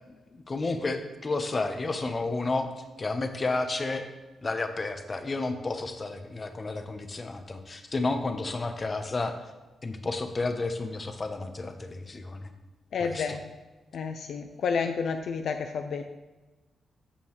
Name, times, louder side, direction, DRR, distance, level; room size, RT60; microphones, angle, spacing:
voice 1, 0.0-4.1 4.4-9.4 9.8-12.5 13.0-13.2, left 3 dB, 35° left, 7 dB, 0.9 m, -31 dB
voice 2, 12.9-13.5 13.9-16.0, left 5 dB, 75° left, 6 dB, 0.5 m, -30 dB
14.0 x 5.4 x 3.2 m, 1.2 s
cardioid pair, 80°, 0 cm